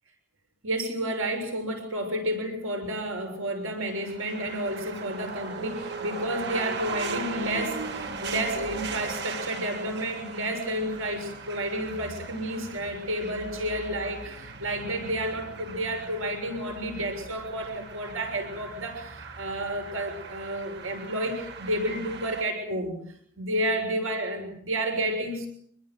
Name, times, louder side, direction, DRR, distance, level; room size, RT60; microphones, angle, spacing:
voice 1, 0.6-23.0 23.4-25.5, right 1 dB, 85° right, 5 dB, 6.7 m, -31 dB
sound 1, 3.8-22.4, right 4 dB, 55° right, 2.7 m, -39 dB
27.0 x 21.0 x 7.8 m, 0.65 s
head